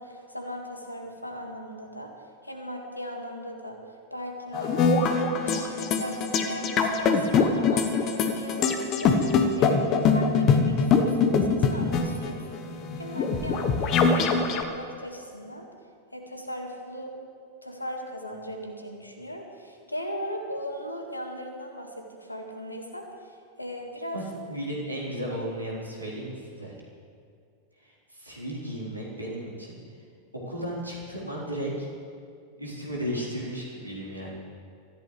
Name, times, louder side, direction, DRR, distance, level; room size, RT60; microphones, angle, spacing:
voice 1, 0.0-2.1 2.4-3.8 4.1-5.2 5.5-12.6 12.9-15.7 16.1-17.2 17.6-24.2, equal, 85° left, 3 dB, 1.9 m, -38 dB
sound 1, 4.5-14.6, left 5 dB, 35° left, 1.2 m, -23 dB
voice 2, 24.5-26.7 27.8-29.8 30.4-31.9 32.6-34.3, equal, 85° right, -6 dB, 4.2 m, -34 dB
24.5 x 14.5 x 3.4 m, 2.3 s
figure-of-eight pair, 90°, 0 cm